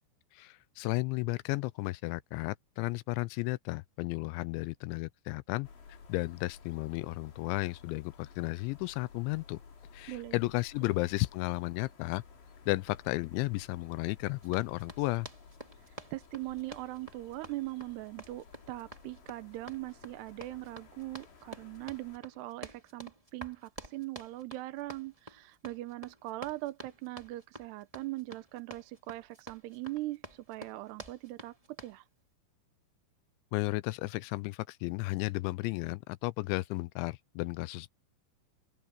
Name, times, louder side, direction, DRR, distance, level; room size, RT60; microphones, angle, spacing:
voice 1, 0.3-9.6 9.9-12.2 12.7-15.3 33.5-37.9, left 21 dB, 85° left, 2.7 m, -33 dB
sound 1, 5.6-22.2, left 5 dB, 65° left, 7.8 m, -55 dB
Run, 14.4-32.0, right 1 dB, 20° right, 0.9 m, -49 dB
voice 2, 15.9-32.1, right 18 dB, 75° right, 2.6 m, -41 dB
open air
omnidirectional pair, 5.7 m